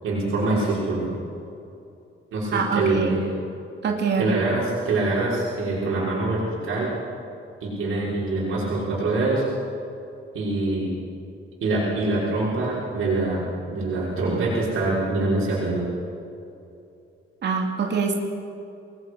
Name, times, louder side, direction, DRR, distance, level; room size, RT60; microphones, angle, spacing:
voice 1, 0.0-1.1 2.3-3.2 4.2-6.9 7.6-9.4 10.3-10.9 11.6-13.4 13.7-15.8, right 2 dB, 75° right, -7 dB, 6.1 m, -24 dB
voice 2, 2.5-3.2 3.8-4.5 17.4-18.1, right 5 dB, 55° right, 1 dB, 2.7 m, -24 dB
28.0 x 21.0 x 6.4 m, 2.8 s
wide cardioid pair, 180°, 21 cm